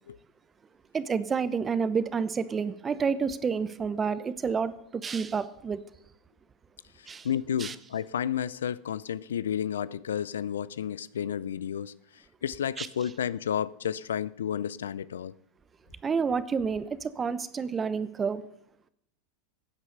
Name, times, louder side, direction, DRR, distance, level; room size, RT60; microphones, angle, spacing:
voice 1, 0.9-5.8 7.1-7.3 7.6-7.7 12.8-12.9 16.0-18.4, right 5 dB, 25° right, 0.9 m, -29 dB
voice 2, 7.0-15.3, left 9 dB, 85° left, 0.4 m, -32 dB
15.5 x 8.2 x 6.7 m
hypercardioid pair, 105°, 0 cm